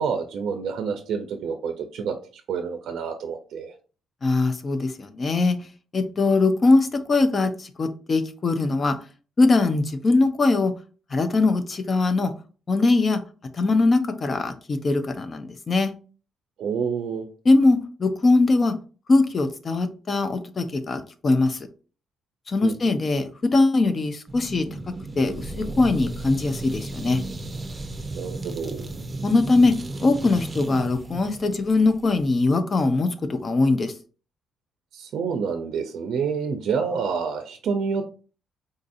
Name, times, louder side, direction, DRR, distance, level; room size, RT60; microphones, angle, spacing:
voice 1, 0.0-2.2 2.5-3.7 16.6-17.3 22.6-22.8 28.1-28.9 34.9-38.1, right 6 dB, 75° right, 6 dB, 0.4 m, -28 dB
voice 2, 4.2-5.6 5.9-9.0 9.4-10.7 11.1-12.3 12.7-13.2 13.5-15.9 17.4-18.8 19.1-21.6 22.5-24.8 25.2-27.2 29.2-29.7 30.0-33.9, left 3 dB, 35° left, 10 dB, 0.4 m, -21 dB
sound 1, 24.3-32.3, right 2 dB, 25° right, 0.6 m, -35 dB
3.8 x 2.6 x 2.4 m, 0.37 s
cardioid pair, 90°, 0 cm